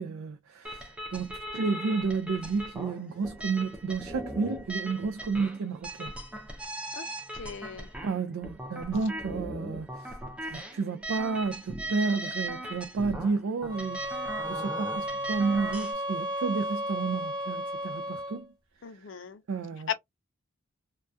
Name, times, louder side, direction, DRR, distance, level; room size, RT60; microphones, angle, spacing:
voice 1, 0.0-6.1 8.0-10.2 10.4-18.5 19.0-19.1 19.5-19.9, right 4 dB, 75° right, 0.4 m, -31 dB
sound 1, 0.6-15.9, right 1 dB, 5° right, 0.4 m, -39 dB
voice 2, 7.3-7.9 18.8-19.4 19.9-20.0, left 7 dB, 60° left, 0.4 m, -36 dB
sound 2, 13.7-18.4, equal, 20° right, 0.9 m, -34 dB
2.2 x 2.2 x 2.5 m
head